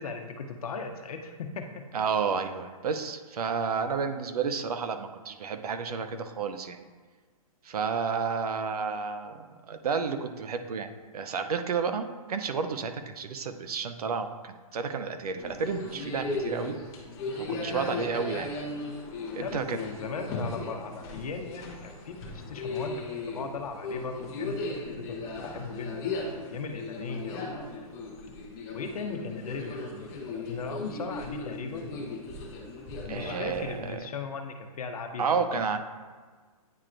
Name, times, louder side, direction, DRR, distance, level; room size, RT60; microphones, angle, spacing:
voice 1, 0.0-1.8 19.4-26.0 26.5-27.9 28.7-32.0 33.0-35.2 35.5-35.6, left 4 dB, 75° left, 5 dB, 0.8 m, -38 dB
voice 2, 1.9-6.8 7.6-16.8 17.3-18.5 19.3-19.8 33.1-34.0 35.2-35.8, right 5 dB, 80° right, 8 dB, 0.6 m, -31 dB
sound 1, 15.4-33.9, left 3 dB, 20° left, 0.8 m, -37 dB
9.3 x 4.3 x 2.6 m, 1.4 s
hypercardioid pair, 160°, 19 cm